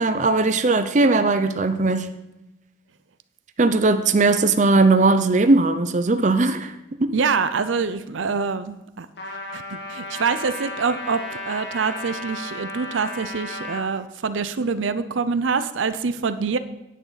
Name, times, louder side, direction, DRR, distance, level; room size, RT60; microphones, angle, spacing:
voice 1, 0.0-2.1 3.6-6.7 7.0-7.1, right 3 dB, 40° right, 9 dB, 0.5 m, -18 dB
voice 2, 7.1-9.1 9.5-16.6, right 5 dB, 85° right, 12 dB, 0.6 m, -25 dB
Trumpet, 9.2-13.8, left 1 dB, 60° left, 1.5 m, -34 dB
9.9 x 8.5 x 4.1 m, 0.97 s
head